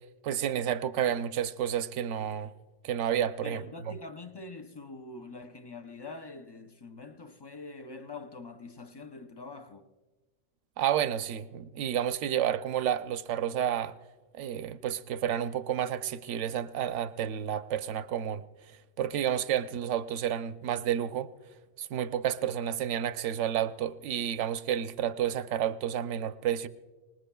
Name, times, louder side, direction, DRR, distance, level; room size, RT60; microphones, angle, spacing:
voice 1, 0.2-2.5 2.8-3.6 10.8-13.9 14.3-18.4 19.0-21.3 21.8-26.7, right 10 dB, 85° right, 0.9 m, -30 dB
voice 2, 3.4-9.9, left 3 dB, 35° left, 0.4 m, -44 dB
25.0 x 19.5 x 2.3 m
omnidirectional pair, 1.2 m